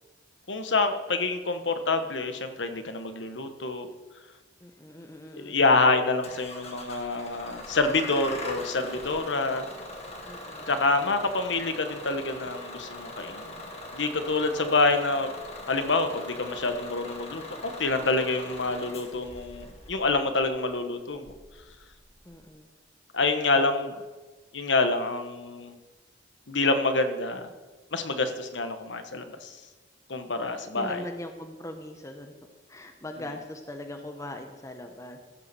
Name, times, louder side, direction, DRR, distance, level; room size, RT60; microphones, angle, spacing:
voice 1, 0.5-3.9 5.3-9.7 10.7-13.6 13.9-15.3 15.7-21.3 23.1-24.0 24.5-25.8 26.5-27.5 27.9-29.6 30.1-31.0, left 3 dB, 80° left, 8 dB, 1.2 m, -27 dB
voice 2, 4.6-5.6 10.2-10.7 22.2-22.7 23.6-23.8 30.8-32.3 32.7-35.2, left 1 dB, 15° left, 5 dB, 0.9 m, -40 dB
Bus / Engine starting, 6.2-22.4, left 1 dB, 35° left, 1.7 m, -42 dB
15.0 x 7.0 x 6.8 m, 1.3 s
head